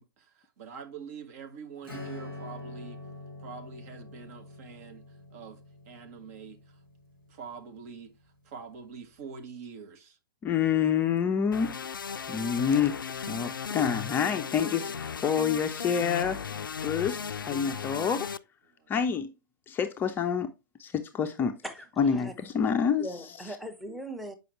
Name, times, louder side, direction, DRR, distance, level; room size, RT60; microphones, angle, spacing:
voice 1, 0.0-3.0 3.4-5.6 5.9-6.8 7.3-10.2 16.8-17.1 18.8-18.9, right 5 dB, 45° right, 1.3 m, -45 dB
Acoustic guitar / Strum, 1.8-8.1, left 2 dB, 85° right, 3.7 m, -45 dB
voice 2, 10.4-11.8 12.3-14.9 15.2-16.4 16.8-18.3 18.9-19.3 19.7-20.5 20.8-21.6 22.0-23.1, left 7 dB, 20° left, 0.5 m, -27 dB
sound 1, 11.5-18.4, left 6 dB, 75° left, 0.4 m, -36 dB
voice 3, 21.4-22.3 23.0-24.3, right 1 dB, ahead, 0.9 m, -40 dB
7.6 x 5.3 x 3.1 m
figure-of-eight pair, 110°, 11 cm